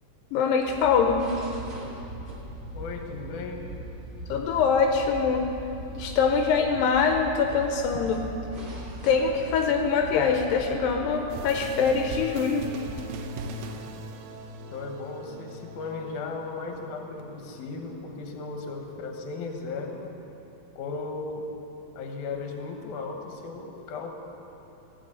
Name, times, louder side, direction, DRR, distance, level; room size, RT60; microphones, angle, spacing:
voice 1, 0.3-1.3 4.3-5.5 6.0-8.2 9.0-12.7, left 5 dB, 85° left, 4 dB, 2.4 m, -23 dB
sound 1, 0.5-12.7, equal, 60° right, 0.8 m, -40 dB
voice 2, 2.7-3.7 14.6-20.1 20.8-21.5 22.0-24.1, left 4 dB, 70° left, 3 dB, 2.4 m, -36 dB
sound 2, 11.3-19.0, right 2 dB, 85° right, 2.4 m, -41 dB
15.0 x 5.7 x 7.9 m, 3.0 s
omnidirectional pair, 4.0 m